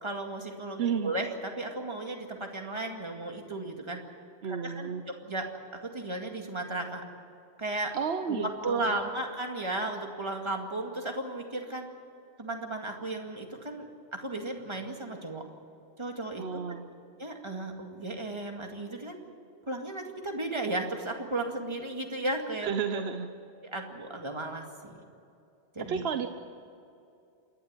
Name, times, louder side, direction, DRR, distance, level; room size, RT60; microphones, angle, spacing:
voice 1, 0.0-4.0 4.5-7.0 7.6-7.9 8.3-11.9 12.4-15.5 16.0-16.8 17.2-19.2 19.7-23.0 23.6-24.9 25.8-26.0, right 2 dB, 25° right, 2 dB, 2.2 m, -35 dB
voice 2, 0.8-1.1 4.4-5.0 7.9-9.0 16.4-16.9 22.6-23.3 25.8-26.3, right 6 dB, 75° right, 8 dB, 1.1 m, -32 dB
27.5 x 12.0 x 9.9 m, 2.6 s
omnidirectional pair, 1.1 m